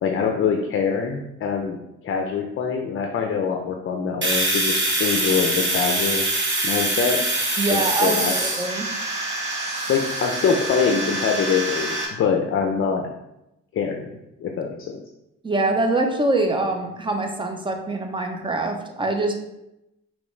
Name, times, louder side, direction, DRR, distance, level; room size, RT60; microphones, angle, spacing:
voice 1, 0.0-1.8 2.0-6.2 6.6-7.2 7.7-8.6 9.9-13.1 13.7-15.0, left 6 dB, 45° left, 3 dB, 0.6 m, -24 dB
Domestic sounds home sounds, 4.2-12.1, right 2 dB, 40° right, 1.4 m, -24 dB
voice 2, 7.6-8.9 15.4-19.3, right 2 dB, 15° right, 4 dB, 0.7 m, -24 dB
5.0 x 3.1 x 3.2 m, 0.89 s
cardioid pair, 90°, 30 cm